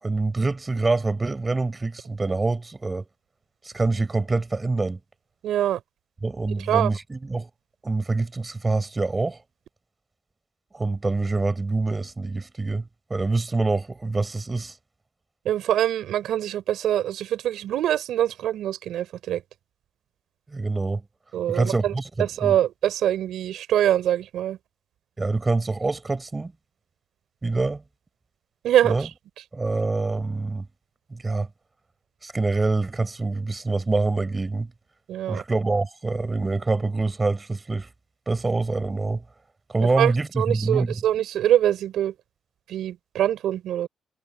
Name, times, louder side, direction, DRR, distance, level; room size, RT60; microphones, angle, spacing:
voice 1, 0.0-3.0 3.6-5.0 6.2-7.5 7.8-9.4 10.7-14.7 20.5-21.0 21.5-22.6 25.2-26.5 27.4-27.8 28.8-29.1 29.5-30.7 31.1-31.5 32.2-34.7 35.3-37.9 38.3-39.2 39.7-41.0, right 3 dB, 20° right, 6.2 m, -25 dB
voice 2, 5.4-5.8 6.7-6.9 15.4-19.4 21.3-21.9 22.2-24.6 28.6-29.0 35.1-35.4 40.0-42.1 42.7-43.9, right 11 dB, 75° right, 4.8 m, -24 dB
cardioid pair, 90°, 0 cm